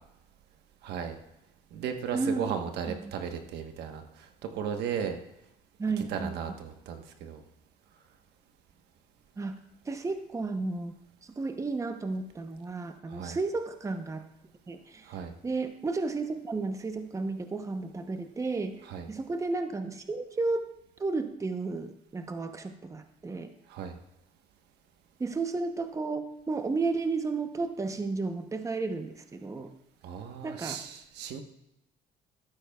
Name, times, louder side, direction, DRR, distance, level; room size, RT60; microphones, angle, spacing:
voice 1, 0.8-1.2 1.7-5.2 6.1-7.4 13.1-13.4 15.0-15.3 18.9-19.1 23.7-24.0 30.0-31.4, right 7 dB, 80° right, 5 dB, 1.2 m, -36 dB
voice 2, 2.1-3.1 5.8-6.3 9.4-9.5 9.9-10.9 11.2-14.2 14.7-15.1 15.4-18.8 19.1-20.7 21.0-23.5 25.2-29.7 30.4-30.8, right 3 dB, 20° right, 7 dB, 0.8 m, -33 dB
13.5 x 12.0 x 2.3 m, 0.86 s
cardioid pair, 110°, 17 cm